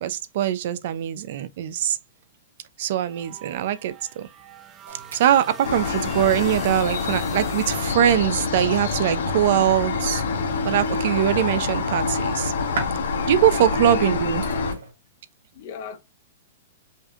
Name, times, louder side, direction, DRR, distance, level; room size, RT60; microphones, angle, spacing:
voice 1, 0.0-2.0 2.8-4.3 5.1-10.2 10.6-12.5 13.3-14.4, right 11 dB, 60° right, 0.5 m, -22 dB
sound 1, 3.0-7.8, right 8 dB, 20° right, 0.7 m, -43 dB
sound 2, 4.9-14.9, right 3 dB, 75° right, 2.0 m, -41 dB
sound 3, 5.6-14.7, left 4 dB, 80° left, 1.0 m, -26 dB
voice 2, 13.5-14.0 15.5-16.0, left 7 dB, 50° left, 1.3 m, -39 dB
5.2 x 2.5 x 2.5 m
hypercardioid pair, 135°, 0 cm